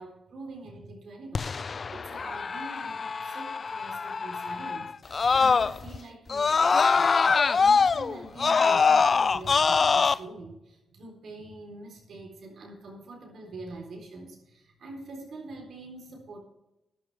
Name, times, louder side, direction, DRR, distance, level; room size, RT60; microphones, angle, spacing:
voice 1, 0.0-16.4, right 2 dB, 70° right, 1 dB, 4.0 m, -45 dB
Screaming, 1.3-6.0 6.3-10.1, left 5 dB, 45° left, 0.4 m, -24 dB
14.0 x 11.5 x 3.5 m, 0.93 s
cardioid pair, 65°, 0 cm